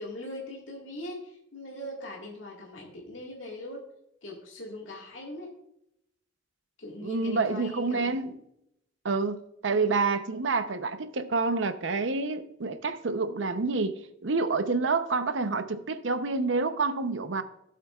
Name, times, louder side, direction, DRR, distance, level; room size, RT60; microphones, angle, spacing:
voice 1, 0.0-3.9 4.2-5.5 6.8-8.4 9.7-10.1, left 1 dB, 80° left, -2 dB, 1.8 m, -41 dB
voice 2, 7.0-8.3 9.0-17.4, right 3 dB, 70° right, 10 dB, 0.7 m, -28 dB
16.0 x 7.4 x 2.4 m, 0.79 s
head